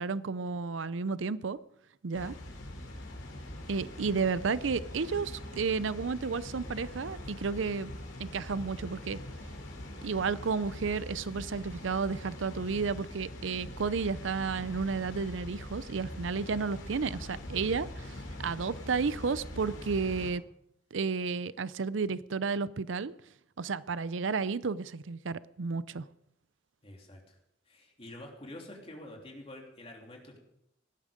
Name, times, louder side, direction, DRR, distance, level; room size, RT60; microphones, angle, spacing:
voice 1, 0.0-1.6 2.0-2.3 3.7-7.9 8.2-9.2 10.0-20.4 20.9-23.1 23.6-26.0, right 5 dB, 85° right, 17 dB, 0.6 m, -32 dB
Water, 2.1-20.3, left 1 dB, 85° left, 3.5 m, -43 dB
voice 2, 20.0-20.3 26.8-27.4 27.7-30.4, left 1 dB, 30° left, 0 dB, 3.1 m, -48 dB
17.5 x 12.0 x 5.2 m, 0.79 s
head